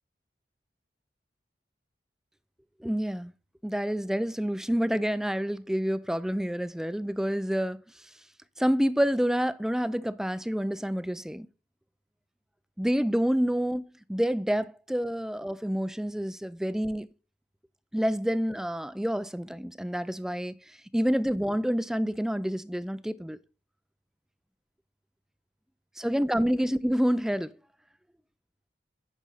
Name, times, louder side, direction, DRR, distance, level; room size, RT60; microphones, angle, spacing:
voice 1, 2.8-3.3 3.6-7.8 8.6-11.5 12.8-13.8 14.1-17.1 17.9-20.5 20.9-23.4 26.0-27.5, equal, 5° right, 0.4 m, -28 dB
10.0 x 6.1 x 4.1 m
head